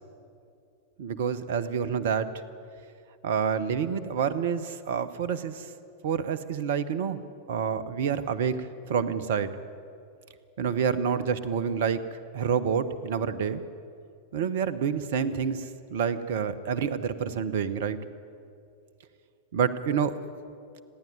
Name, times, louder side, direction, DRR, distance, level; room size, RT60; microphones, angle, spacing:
voice 1, 1.0-2.3 3.2-5.7 6.0-7.2 7.5-9.5 10.6-12.0 12.3-13.6 14.3-18.0 19.5-20.1, right 7 dB, 55° right, 15 dB, 1.1 m, -28 dB
29.0 x 11.0 x 9.5 m, 2.5 s
figure-of-eight pair, 90°, 0 cm